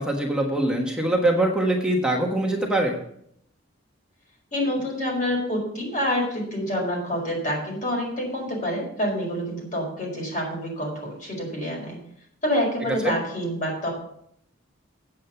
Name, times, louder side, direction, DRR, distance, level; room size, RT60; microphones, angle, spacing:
voice 1, 0.0-3.0 13.0-13.1, right 1 dB, 5° right, 0 dB, 1.4 m, -23 dB
voice 2, 4.5-12.0 12.4-13.9, equal, 40° left, -1 dB, 4.7 m, -27 dB
8.9 x 8.5 x 5.7 m, 0.71 s
head